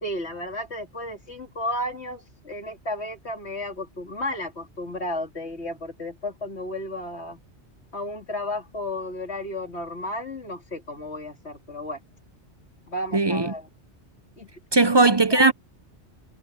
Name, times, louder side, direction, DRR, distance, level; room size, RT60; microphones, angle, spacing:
voice 1, 0.0-7.4 7.9-12.0 12.9-13.7 14.4-14.5 15.3-15.5, left 1 dB, 70° left, 3.5 m, -33 dB
voice 2, 13.1-13.5 14.7-15.5, right 3 dB, 30° right, 0.6 m, -18 dB
omnidirectional pair, 1.2 m